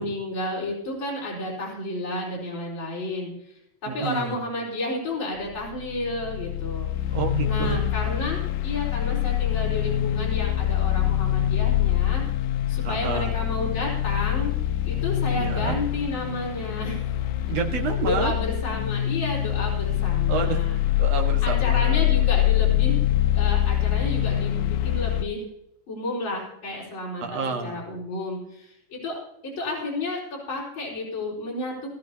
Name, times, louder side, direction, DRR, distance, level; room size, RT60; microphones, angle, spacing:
voice 1, 0.0-3.3 3.8-6.9 7.4-12.2 12.7-14.6 14.9-17.0 18.1-20.8 21.4-23.0 23.3-25.4 25.9-31.8, left 2 dB, 40° left, -5 dB, 5.4 m, -31 dB
voice 2, 3.9-4.4 7.1-7.8 12.8-13.4 15.4-15.8 17.5-18.3 19.9-20.0 20.3-20.6 21.0-22.1 27.2-27.8, right 6 dB, 60° right, 3 dB, 2.7 m, -29 dB
sound 1, 5.4-25.2, left 12 dB, 85° left, 2.1 m, -24 dB
20.5 x 14.5 x 2.9 m, 0.78 s
omnidirectional pair, 3.3 m